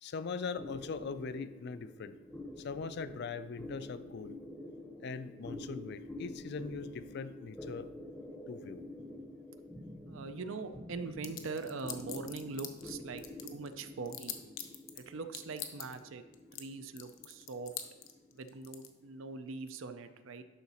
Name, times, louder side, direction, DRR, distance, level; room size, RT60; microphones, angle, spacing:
voice 1, 0.0-2.2 2.6-4.4 5.0-7.9 8.5-8.8, left 5 dB, 55° left, 14 dB, 0.4 m, -41 dB
sound 1, 0.5-19.3, left 1 dB, 5° left, 0.7 m, -48 dB
voice 2, 10.1-14.4 14.9-16.2 16.5-17.7 18.3-20.4, right 4 dB, 70° right, 10 dB, 0.5 m, -42 dB
sound 2, 11.2-12.9 13.2-15.0 15.3-16.0 16.3-16.6 17.0-18.9, left 12 dB, 70° left, 0.7 m, -42 dB
11.5 x 4.0 x 4.2 m, 1.2 s
head